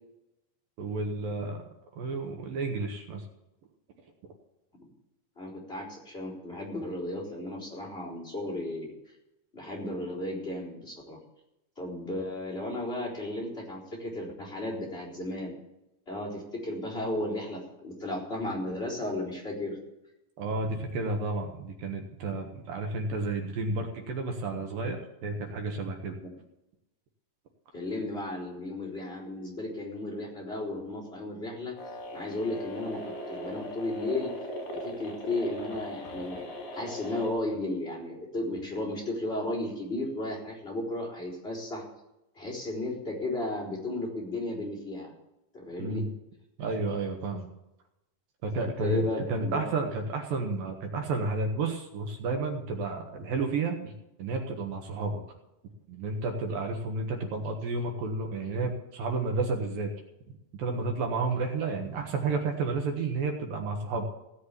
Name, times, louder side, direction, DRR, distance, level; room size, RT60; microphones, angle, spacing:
voice 1, 0.8-1.6 2.0-3.3 20.4-26.2 45.8-46.1 46.6-47.5 48.4-49.0 49.3-53.9 54.2-55.2 55.9-59.9 60.6-64.1, right 3 dB, 70° right, 3 dB, 3.1 m, -31 dB
voice 2, 5.4-8.9 9.5-11.2 11.8-15.5 16.1-19.8 26.2-26.4 27.7-31.7 32.1-34.3 34.8-36.4 36.7-41.8 42.3-45.1 45.5-46.0 48.6-49.7, left 1 dB, 15° left, -4 dB, 4.1 m, -34 dB
sound 1, 31.8-37.3, equal, 65° left, 4.5 m, -39 dB
17.0 x 6.5 x 8.3 m, 0.89 s
omnidirectional pair, 4.3 m